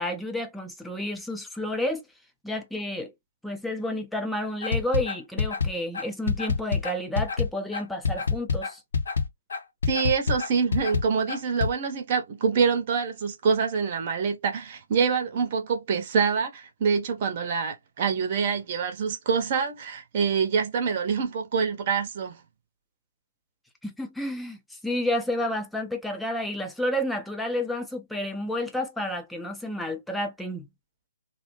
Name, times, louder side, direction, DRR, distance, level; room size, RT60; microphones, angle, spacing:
voice 1, 0.0-2.0 2.4-3.1 3.4-8.8 23.8-30.7, left 1 dB, 5° left, 0.5 m, -30 dB
sound 1, 4.6-11.7, left 5 dB, 60° left, 0.7 m, -27 dB
voice 2, 9.9-22.3, right 6 dB, 40° right, 0.7 m, -26 dB
2.7 x 2.0 x 3.0 m
figure-of-eight pair, 135°, 0 cm